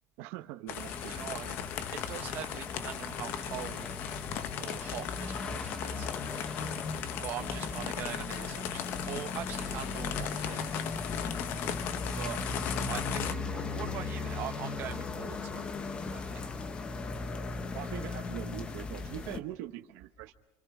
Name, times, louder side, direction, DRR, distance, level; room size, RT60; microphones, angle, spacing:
voice 1, 0.2-1.2 17.7-20.3, right 14 dB, 65° right, 7 dB, 1.1 m, -42 dB
sound 1, 0.7-13.3, left 9 dB, 45° left, 0.9 m, -38 dB
sound 2, 0.8-19.4, left 3 dB, 20° left, 0.9 m, -38 dB
voice 2, 1.1-3.9 4.6-6.1 7.2-10.7 12.1-12.4 12.9-15.7 16.1-16.5, right 12 dB, 40° right, 6 dB, 1.2 m, -42 dB
28.0 x 25.0 x 4.9 m, 0.91 s
cardioid pair, 170°, 5 cm